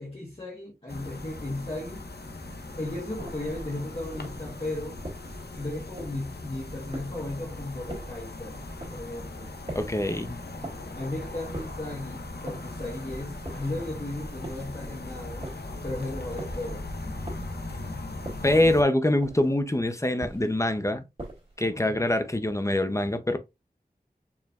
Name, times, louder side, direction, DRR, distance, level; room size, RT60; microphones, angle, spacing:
voice 1, 0.0-2.0 2.8-5.0 5.6-8.6 8.9-9.5 10.9-15.5 15.8-16.8 21.6-22.0, left 1 dB, 35° left, 1.3 m, -36 dB
sound 1, 0.9-18.8, left 2 dB, 90° left, 0.7 m, -39 dB
sound 2, 3.2-3.6 4.1-4.5 5.0-5.4 6.0-6.4 6.9-7.4 7.9-8.3 8.8-9.1 9.7-10.1 10.6-11.0 11.5-11.9 12.5-12.9 13.4-13.9 14.4-14.8 15.4-15.8 16.4-16.7 17.3-17.7 18.2-18.6 19.2-19.6 20.2-20.6 21.2-21.6, right 1 dB, 35° right, 2.1 m, -41 dB
voice 2, 9.7-10.4 18.4-21.0 21.6-23.4, left 1 dB, 20° left, 0.6 m, -24 dB
4.7 x 3.1 x 2.4 m
wide cardioid pair, 40°, 16 cm